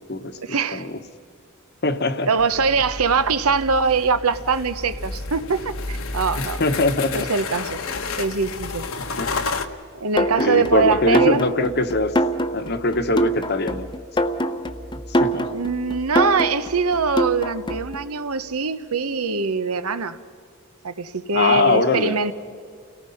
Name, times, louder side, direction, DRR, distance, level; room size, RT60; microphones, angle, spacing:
voice 1, 0.4-0.8 2.3-6.6 7.1-7.8 8.2-8.9 10.0-11.5 15.5-20.2 20.8-22.3, right 4 dB, 75° right, 12 dB, 1.0 m, -22 dB
voice 2, 1.8-2.3 6.4-7.3 9.2-9.3 10.4-12.2 12.5-13.9 15.1-15.5 21.3-22.1, left 2 dB, 50° left, 9 dB, 1.2 m, -22 dB
sound 1, 2.4-9.7, left 3 dB, 65° left, 1.2 m, -31 dB
sound 2, 10.2-18.0, equal, 20° left, 0.8 m, -24 dB
29.5 x 18.5 x 5.7 m, 2.2 s
head